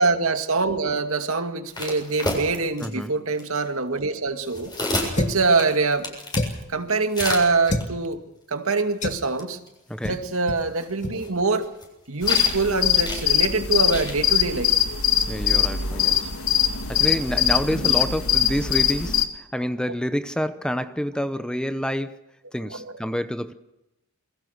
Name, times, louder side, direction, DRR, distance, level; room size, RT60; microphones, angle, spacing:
voice 1, 0.0-4.7 5.2-6.1 6.7-8.2 8.5-9.6 10.1-11.7 12.1-14.7 17.7-17.9 22.8-22.9, right 3 dB, 80° right, 2.3 m, -24 dB
sound 1, 1.7-2.9 3.4-3.6 4.4-6.5 7.1-7.8 9.1-9.2 9.4-9.5 9.7-9.8 10.6-11.8 12.2-12.7 12.9-13.2 13.8-14.1, left 1 dB, 20° left, 7.6 m, -29 dB
voice 2, 2.8-3.2 9.9-10.2 15.3-16.3 16.9-22.2 22.5-23.5, equal, 5° left, 0.9 m, -28 dB
sound 2, 5.1-5.5 6.3-6.7 7.7-7.9 9.0-9.3 10.0-10.2 10.5-10.6 11.0-11.2, left 1 dB, 35° left, 2.1 m, -27 dB
sound 3, 12.2-19.3, left 9 dB, 90° left, 2.4 m, -22 dB
28.0 x 22.0 x 6.6 m
head